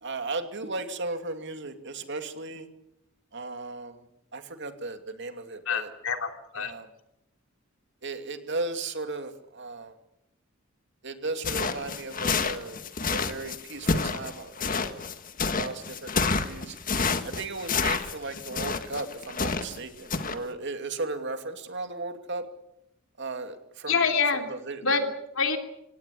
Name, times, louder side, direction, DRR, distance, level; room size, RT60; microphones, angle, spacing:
voice 1, 0.0-2.7 3.3-4.0 4.3-5.9 6.6-6.9 8.0-9.9 11.0-12.8 13.1-15.0 15.6-16.8 17.2-22.4 23.2-24.0 24.5-24.8, right 3 dB, 60° right, 7 dB, 2.7 m, -36 dB
voice 2, 5.6-6.7 23.9-24.5 24.8-25.1 25.3-25.6, left 5 dB, 70° left, 5 dB, 3.1 m, -26 dB
sound 1, 11.4-19.8 20.1-20.4, left 4 dB, 45° left, 1.6 m, -29 dB
26.0 x 18.0 x 8.5 m, 0.84 s
head